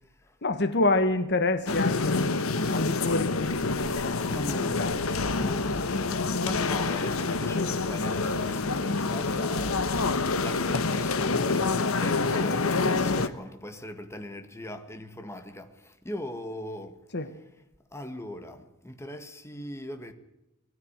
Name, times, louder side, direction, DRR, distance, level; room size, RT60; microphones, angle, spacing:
voice 1, 0.4-4.5 4.8-4.9 17.1-17.3, left 2 dB, 55° left, 1.5 m, -28 dB
sound 1, 1.7-13.3, left 3 dB, 85° left, 1.2 m, -27 dB
voice 2, 4.3-4.8 5.3-17.0 17.9-20.1, left 1 dB, 15° left, 1.8 m, -40 dB
20.5 x 14.0 x 8.9 m
head